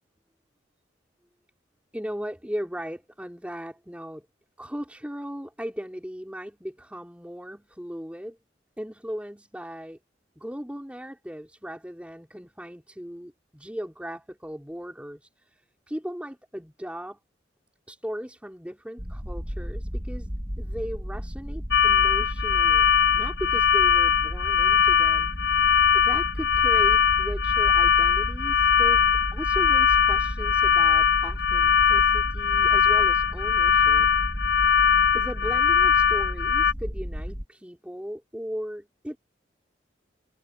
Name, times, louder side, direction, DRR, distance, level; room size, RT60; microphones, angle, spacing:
voice 1, 1.9-4.3 4.6-8.4 8.8-10.0 10.4-17.2 17.9-20.3 20.6-29.0 29.3-34.1 34.6-34.9 35.1-39.2, equal, 5° right, 5.4 m, -37 dB
sound 1, 19.0-37.4, equal, 25° right, 4.7 m, -33 dB
sound 2, 21.7-36.7, left 8 dB, 65° left, 0.6 m, -21 dB
head